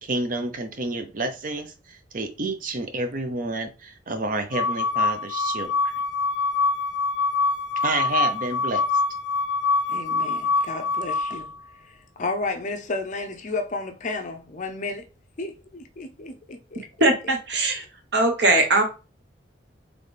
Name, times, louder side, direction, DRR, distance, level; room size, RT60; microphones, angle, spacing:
voice 1, 0.0-5.7 7.8-9.0, right 2 dB, 45° right, 0.7 m, -29 dB
sound 1, 4.5-11.5, left 4 dB, 85° left, 0.4 m, -25 dB
voice 2, 9.9-11.5 12.2-15.0 15.4-16.8, left 3 dB, 40° left, 0.6 m, -32 dB
voice 3, 17.0-17.8 18.1-18.8, right 2 dB, 65° right, 1.0 m, -20 dB
4.0 x 3.2 x 3.3 m
head